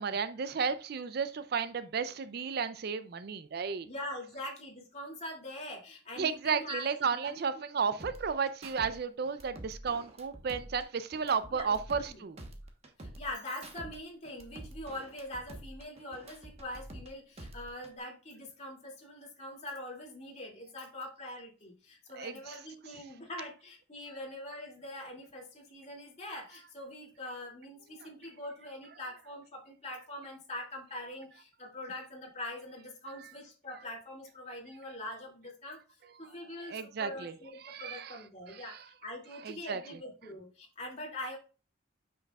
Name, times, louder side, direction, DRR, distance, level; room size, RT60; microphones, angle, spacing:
voice 1, 0.0-3.9 6.2-12.4 22.1-22.6 36.6-37.3 37.6-38.2 38.5-38.8 39.4-39.8, right 6 dB, 50° right, 12 dB, 0.4 m, -33 dB
voice 2, 3.8-6.9 7.2-7.4 11.5-11.8 12.1-12.2 13.0-35.8 36.2-41.4, left 1 dB, 35° left, -1 dB, 2.3 m, -43 dB
sound 1, 8.0-9.0 9.2-12.1 12.4-14.0 14.2-17.1 17.4-18.0, right 1 dB, 30° right, 1.1 m, -48 dB
7.9 x 6.2 x 2.3 m, 0.35 s
head